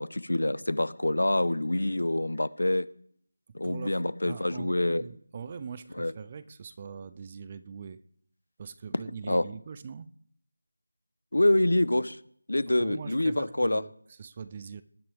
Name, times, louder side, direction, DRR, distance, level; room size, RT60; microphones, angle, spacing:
voice 1, 0.0-2.9 3.5-5.0 6.0-6.1 9.3-9.4 11.3-12.2 12.5-13.8, left 1 dB, 90° left, 17 dB, 1.0 m, -26 dB
voice 2, 3.6-8.0 8.6-10.1 12.8-14.8, right 6 dB, 15° right, 14 dB, 0.4 m, -42 dB
19.0 x 11.0 x 3.6 m, 0.64 s
figure-of-eight pair, 175°, 0 cm